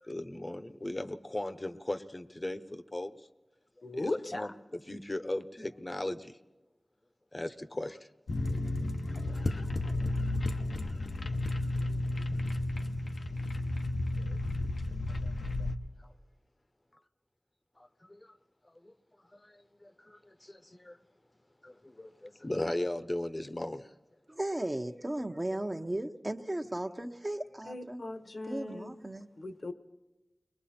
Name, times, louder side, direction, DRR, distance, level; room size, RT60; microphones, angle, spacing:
voice 1, 0.0-3.1 3.9-6.4 7.3-8.0 12.0-12.2 14.2-14.4 15.2-15.3 15.6-15.7 16.0-16.1 17.8-18.3 18.8-18.9 19.3-21.0 21.6-23.9, left 1 dB, 30° left, 0.9 m, -38 dB
voice 2, 3.8-4.5 27.7-29.0 29.4-29.7, left 2 dB, 60° left, 1.1 m, -37 dB
sound 1, 8.3-15.8, left 2 dB, 90° left, 1.0 m, -32 dB
voice 3, 24.3-28.0 28.5-29.3, right 1 dB, 30° right, 1.0 m, -36 dB
29.5 x 22.0 x 4.3 m
wide cardioid pair, 65°, 0 cm